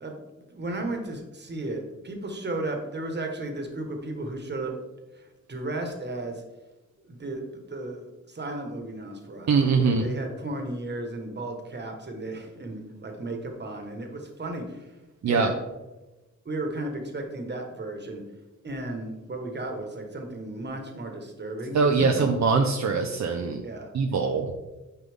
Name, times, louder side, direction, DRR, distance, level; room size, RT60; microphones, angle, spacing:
voice 1, 0.0-4.8 5.1-6.4 7.1-15.0 15.3-15.6 16.4-18.2 18.6-22.3 23.6-23.9, right 2 dB, 35° right, 3 dB, 1.5 m, -34 dB
voice 2, 9.5-10.0 15.2-15.5 21.7-23.6 23.9-24.5, right 4 dB, 65° right, 3 dB, 0.7 m, -22 dB
9.7 x 5.7 x 3.6 m, 1.1 s
wide cardioid pair, 130°, 30 cm